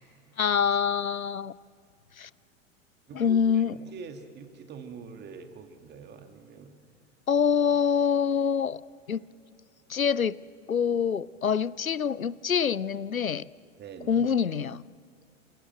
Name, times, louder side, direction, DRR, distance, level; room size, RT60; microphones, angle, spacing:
voice 1, 0.4-1.5 2.2-2.3 3.1-3.7 7.3-8.8 9.1-9.2 9.9-10.4 10.7-13.4 14.1-14.8, left 7 dB, 85° left, 21 dB, 0.6 m, -25 dB
voice 2, 3.1-6.8 13.8-14.3, right 5 dB, 25° right, 6 dB, 2.2 m, -44 dB
28.5 x 17.5 x 7.8 m, 2.5 s
figure-of-eight pair, 95°, 40 cm